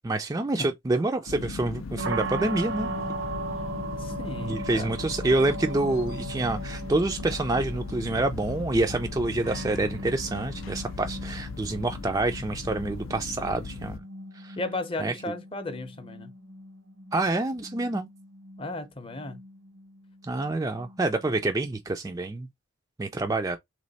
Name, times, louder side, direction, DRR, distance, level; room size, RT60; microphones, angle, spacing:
voice 1, 0.0-2.9 4.4-14.0 14.3-14.6 15.0-15.1 17.1-18.1 20.2-22.5 23.0-23.6, right 2 dB, 15° right, 0.3 m, -27 dB
sound 1, 1.3-14.0, left 4 dB, 90° left, 0.5 m, -38 dB
sound 2, 2.0-21.8, right 2 dB, 75° right, 0.6 m, -39 dB
voice 2, 4.0-4.9 14.6-16.3 18.6-19.4, left 2 dB, 25° left, 0.7 m, -35 dB
3.4 x 3.1 x 4.0 m
head